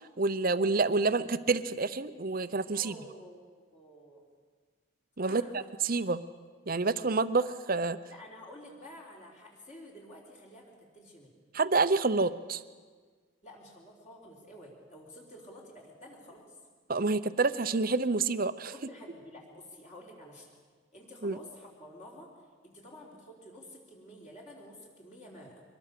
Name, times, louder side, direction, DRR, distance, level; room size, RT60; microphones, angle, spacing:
voice 1, 0.2-2.9 5.2-6.2 6.7-8.0 11.5-12.6 16.9-18.7 21.2-21.4, right 3 dB, 40° right, 13 dB, 0.7 m, -28 dB
voice 2, 2.7-3.4 3.7-4.2 5.3-5.7 8.1-11.4 13.4-16.6 18.7-20.5 20.9-22.3 22.6-25.6, equal, 35° left, -2 dB, 3.9 m, -50 dB
24.0 x 21.5 x 6.8 m, 1.5 s
head